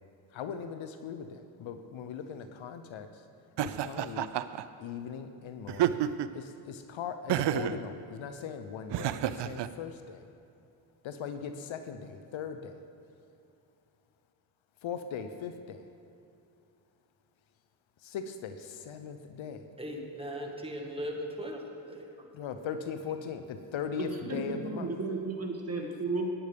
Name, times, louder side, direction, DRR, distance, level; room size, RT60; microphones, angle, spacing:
voice 1, 0.3-3.1 3.6-4.3 4.8-6.1 6.3-10.3 11.0-12.8 14.8-15.8 18.0-19.6 22.3-24.9, left 7 dB, 70° left, 9 dB, 0.8 m, -39 dB
Laughter, 3.6-4.6 5.7-6.4 7.3-7.8 8.9-9.7, right 12 dB, 60° right, 0.5 m, -29 dB
voice 2, 19.8-21.6 21.9-22.5 22.8-22.9, equal, 10° right, 1 dB, 1.7 m, -39 dB
voice 3, 24.0-26.3, right 3 dB, 30° right, 0 dB, 2.1 m, -34 dB
15.0 x 9.9 x 3.5 m, 2.7 s
cardioid pair, 75°, 49 cm